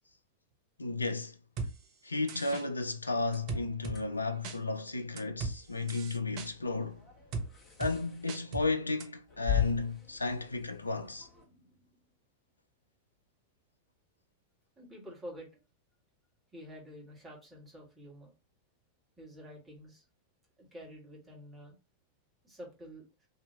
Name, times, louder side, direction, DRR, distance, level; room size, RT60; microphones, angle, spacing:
voice 1, 0.8-1.3 2.0-7.0 7.8-11.3, left 3 dB, 80° left, 0.4 m, -33 dB
sound 1, 1.6-1.7 2.3-2.6 3.5-4.0 4.4-4.6 5.2-5.6 5.9-6.5 7.3-7.5 7.8-7.9 8.3-8.7 9.0-9.1, right 3 dB, 40° right, 0.6 m, -37 dB
sound 2, 3.1-11.4, left 10 dB, 20° left, 1.4 m, -41 dB
voice 2, 11.4-11.8 14.8-15.5 16.5-18.3 19.2-20.0 20.6-21.8 22.4-23.0, equal, 15° right, 1.5 m, -49 dB
2.7 x 2.7 x 3.2 m
figure-of-eight pair, 90°, 0 cm